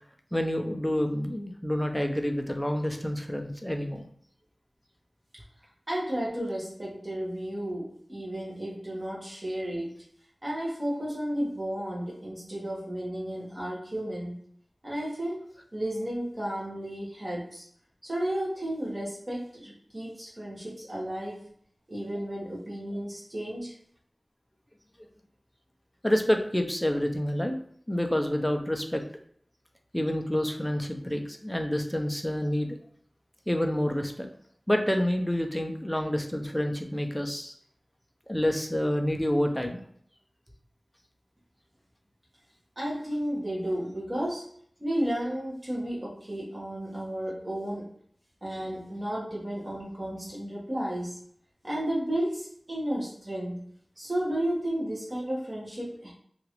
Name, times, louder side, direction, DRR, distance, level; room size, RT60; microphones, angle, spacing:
voice 1, 0.3-4.0 26.0-27.6 27.9-29.0 29.9-32.8 33.5-34.3 34.7-37.5 38.3-39.8, left 1 dB, 10° left, 4 dB, 0.5 m, -28 dB
voice 2, 5.9-9.9 10.4-14.4 14.8-15.4 15.7-17.6 18.0-21.5 21.9-23.7 42.8-44.4 44.8-47.9 48.4-51.2 51.6-53.6 54.0-56.1, right 1 dB, 40° right, -5 dB, 1.1 m, -33 dB
2.9 x 2.5 x 2.9 m, 0.63 s
wide cardioid pair, 50°, 0 cm